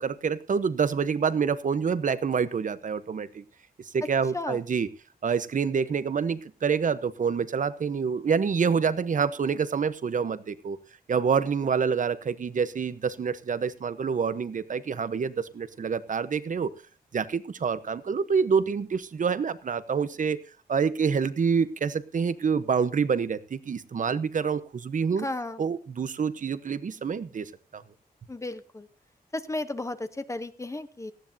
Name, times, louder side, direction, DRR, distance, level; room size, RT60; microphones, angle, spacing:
voice 1, 0.0-3.4 3.9-4.9 5.2-10.8 11.1-16.7 17.1-20.4 20.7-25.3 25.6-27.8, right 6 dB, 55° right, 14 dB, 1.0 m, -27 dB
voice 2, 25.2-25.6 28.3-28.9 29.3-31.1, left 2 dB, 20° left, 10 dB, 0.9 m, -34 dB
18.0 x 14.5 x 2.8 m, 0.34 s
wide cardioid pair, 170°, 16 cm